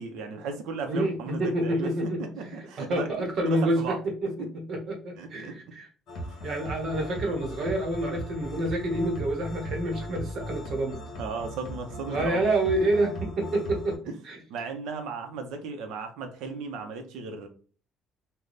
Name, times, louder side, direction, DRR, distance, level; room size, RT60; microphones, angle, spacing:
voice 1, 0.0-3.1 3.6-4.0 4.4-4.5 5.2-5.5 11.2-12.4 14.1-14.2 14.5-17.5, right 4 dB, 80° right, 5 dB, 0.7 m, -36 dB
voice 2, 0.9-5.9 6.4-11.0 12.1-14.0 14.2-14.4, right 1 dB, 40° right, 2 dB, 1.0 m, -28 dB
sound 1, 6.1-14.0, equal, 40° left, 1.6 m, -38 dB
3.3 x 2.2 x 3.9 m, 0.39 s
cardioid pair, 175°, 0 cm